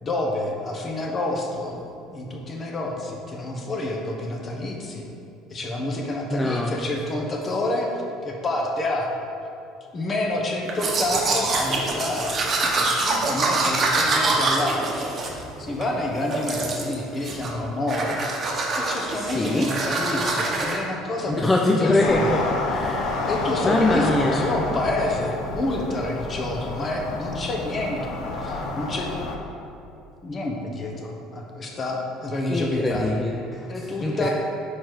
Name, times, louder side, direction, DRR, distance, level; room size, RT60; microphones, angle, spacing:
voice 1, 0.0-1.8 2.1-5.1 5.5-9.1 9.9-18.2 18.8-22.4 23.2-29.1 30.2-33.1 33.7-34.3, left 1 dB, 35° left, 0 dB, 1.0 m, -28 dB
voice 2, 6.3-6.8 19.1-19.7 21.3-23.2 23.6-24.4 32.4-33.7 34.0-34.3, left 2 dB, 15° left, 0 dB, 0.4 m, -23 dB
Domestic sounds home sounds, 10.7-15.9 16.3-17.0 17.2-17.6 17.9-20.8, right 3 dB, 40° right, 0.9 m, -25 dB
sound 1, 22.0-29.4, left 3 dB, 65° left, 0.7 m, -29 dB
4.7 x 4.4 x 4.7 m, 2.6 s
supercardioid pair, 90°, 0 cm